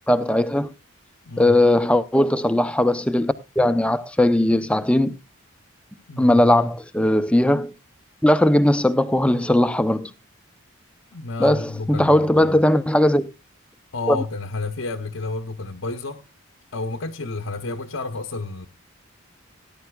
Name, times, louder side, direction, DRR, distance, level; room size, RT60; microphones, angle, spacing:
voice 1, 0.1-0.7 1.4-5.2 6.2-7.7 8.2-10.1 11.4-13.2 14.1-14.2, left 1 dB, 5° left, 0.5 m, -19 dB
voice 2, 1.2-1.6 6.1-6.4 11.1-12.6 13.9-16.2 16.7-18.7, left 3 dB, 70° left, 0.8 m, -31 dB
18.0 x 10.5 x 2.3 m
head